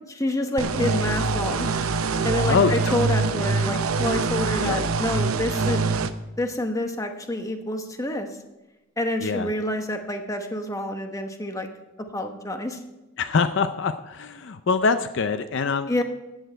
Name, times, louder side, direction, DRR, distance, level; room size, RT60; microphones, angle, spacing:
voice 1, 0.1-1.7 2.2-5.9 6.4-8.4 9.0-11.7 12.1-12.8 15.9-16.0, left 1 dB, 15° left, 6 dB, 0.9 m, -28 dB
sound 1, 0.6-6.1, right 4 dB, 80° right, 0.7 m, -24 dB
voice 2, 13.2-16.0, left 5 dB, 55° left, 11 dB, 0.5 m, -24 dB
14.5 x 8.9 x 4.5 m, 1.0 s
head